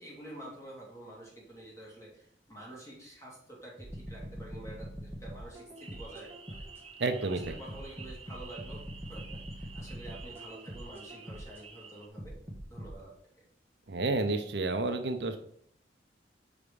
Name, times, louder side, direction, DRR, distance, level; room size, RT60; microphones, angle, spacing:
voice 1, 0.0-6.6 7.3-8.8 9.1-9.2 9.6-12.4 12.7-13.1 13.4-13.5, right 1 dB, 15° left, -4 dB, 2.3 m, -48 dB
sound 1, 3.8-6.8 7.4-11.6 12.2-12.9, equal, 10° right, 1.1 m, -43 dB
sound 2, 5.8-12.1, right 5 dB, 35° right, 0.7 m, -51 dB
voice 2, 7.0-7.5 13.9-15.4, right 3 dB, 65° right, 7 dB, 0.6 m, -30 dB
5.0 x 4.8 x 5.3 m, 0.66 s
head